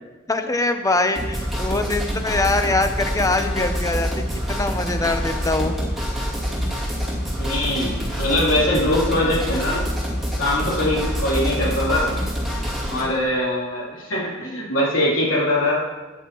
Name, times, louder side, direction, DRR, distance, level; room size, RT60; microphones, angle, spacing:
voice 1, 0.3-4.2 4.5-5.8, left 2 dB, 15° left, 7 dB, 0.7 m, -23 dB
sound 1, 1.2-13.0, equal, ahead, 2.5 m, -26 dB
voice 2, 7.4-9.8 10.4-12.1 12.5-15.8, left 1 dB, 65° left, -5 dB, 3.4 m, -22 dB
13.5 x 9.3 x 3.1 m, 1.2 s
head